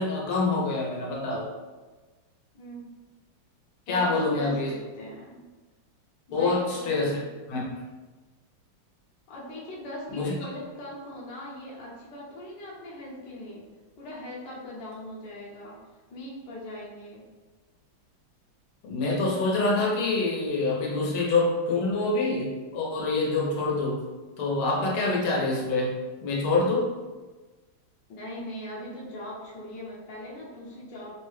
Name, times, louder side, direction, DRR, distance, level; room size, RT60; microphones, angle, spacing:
voice 1, 0.0-1.5 3.9-4.7 6.3-7.2 7.5-7.8 10.1-10.3 18.8-24.0 24.4-25.9 26.2-26.9, left 3 dB, 90° left, -3 dB, 1.6 m, -26 dB
voice 2, 2.5-2.9 3.9-5.4 6.3-7.2 9.3-13.6 14.0-15.8 16.1-17.3 28.1-31.1, left 1 dB, 65° left, -6 dB, 1.4 m, -40 dB
3.9 x 2.1 x 3.1 m, 1.3 s
omnidirectional pair, 2.2 m